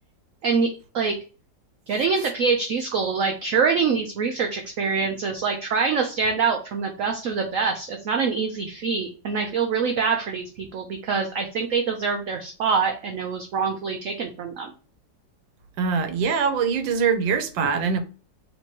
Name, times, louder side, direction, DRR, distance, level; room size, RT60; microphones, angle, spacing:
voice 1, 0.4-1.2 1.9-14.7 17.6-17.7, right 5 dB, 65° right, 0.8 m, -25 dB
voice 2, 15.8-18.0, right 6 dB, 90° right, 1.4 m, -23 dB
3.4 x 2.9 x 4.4 m
omnidirectional pair, 2.0 m